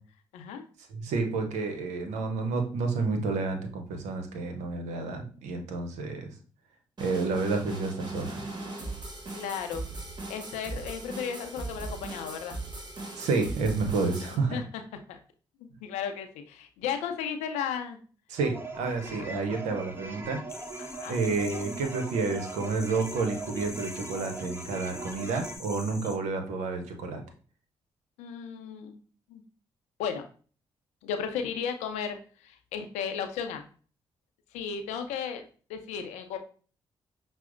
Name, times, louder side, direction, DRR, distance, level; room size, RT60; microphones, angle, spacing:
voice 1, 0.3-0.7 9.3-9.8 10.3-12.6 14.5-14.8 15.1-15.2 15.6-18.0 19.1-19.3 20.8-21.2 28.2-29.0 29.3-29.4 30.0-30.2 31.0-33.6 34.5-36.4, left 7 dB, 85° left, 7 dB, 0.5 m, -35 dB
voice 2, 0.9-6.3 7.0-8.4 13.1-14.6 18.3-20.4 21.1-27.2, right 4 dB, 80° right, 5 dB, 0.7 m, -30 dB
sound 1, 7.0-14.4, right 2 dB, 40° right, 1.2 m, -39 dB
sound 2, 18.4-25.6, right 3 dB, 20° right, 0.8 m, -41 dB
sound 3, 20.5-26.2, left 3 dB, 25° left, 0.7 m, -45 dB
5.8 x 2.0 x 2.5 m, 0.41 s
hypercardioid pair, 45°, 12 cm